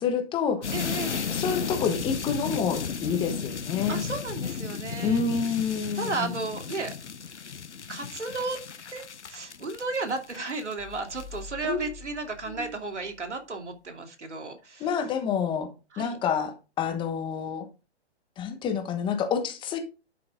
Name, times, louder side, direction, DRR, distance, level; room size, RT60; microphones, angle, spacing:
voice 1, 0.0-0.7 1.3-4.0 5.0-6.3 11.6-11.8 12.5-12.7 14.8-15.7 16.0-17.7 18.4-19.8, left 6 dB, 15° left, 7 dB, 1.1 m, -28 dB
sound 1, 0.6-10.7 11.1-11.4, left 6 dB, 85° left, 1.1 m, -34 dB
voice 2, 0.7-1.2 3.9-5.6 5.9-6.9 7.9-8.6 8.9-9.0 9.3-14.9 15.9-16.2, right 3 dB, 85° right, 5 dB, 2.7 m, -34 dB
sound 2, 10.8-13.5, left 4 dB, 70° left, 2.4 m, -47 dB
11.5 x 5.9 x 3.7 m, 0.30 s
hypercardioid pair, 140°, 34 cm